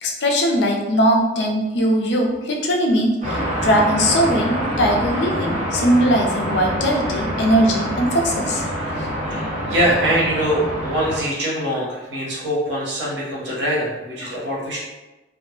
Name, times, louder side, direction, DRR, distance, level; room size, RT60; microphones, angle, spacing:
voice 1, 0.0-9.5 14.2-14.4, equal, 70° left, 1 dB, 0.5 m, -20 dB
sound 1, 3.2-11.2, equal, 40° right, 0.7 m, -25 dB
voice 2, 9.4-14.8, equal, 80° right, -5 dB, 0.9 m, -23 dB
2.2 x 2.0 x 3.0 m, 1.1 s
head